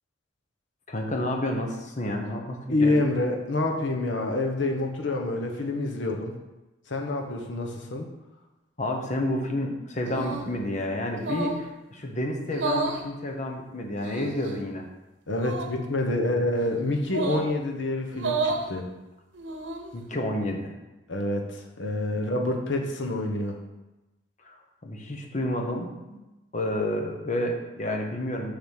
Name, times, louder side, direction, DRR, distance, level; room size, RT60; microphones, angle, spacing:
voice 1, 0.9-2.9 8.8-14.9 19.9-20.7 24.4-24.5 24.8-26.2 26.5-28.5, left 1 dB, 40° left, 2 dB, 1.1 m, -30 dB
voice 2, 2.7-6.3 6.9-8.1 15.3-18.9 21.1-23.6, left 2 dB, 75° left, 3 dB, 1.1 m, -27 dB
sound 1, 10.1-10.5 11.2-11.7 12.5-13.0 14.0-14.5 15.3-15.7 17.1-17.5 18.1-18.7 19.3-19.9, right 3 dB, 75° right, 0.9 m, -31 dB
6.9 x 3.9 x 6.5 m, 1.0 s
head